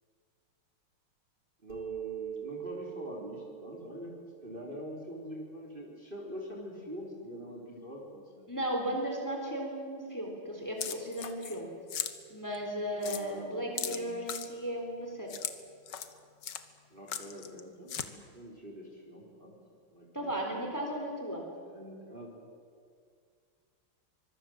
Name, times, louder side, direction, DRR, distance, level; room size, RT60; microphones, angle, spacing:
voice 1, 1.6-4.1 4.4-8.5 12.9-14.1 16.9-19.5 19.9-20.7 21.7-22.4, equal, 25° right, -2 dB, 3.9 m, -44 dB
sound 1, 1.7-5.2, right 8 dB, 90° right, 2.9 m, -42 dB
voice 2, 8.5-11.7 12.3-15.3 20.1-21.4, equal, 10° left, 1 dB, 3.9 m, -35 dB
sound 2, 10.8-11.6 11.9-12.1 12.5-12.6 13.0-13.2 13.8-14.5 15.3-15.5 15.9-16.1 16.4-16.6 17.1-17.6 17.9-18.1, left 8 dB, 60° left, 1.7 m, -37 dB
24.5 x 22.0 x 7.8 m, 2.1 s
omnidirectional pair, 2.3 m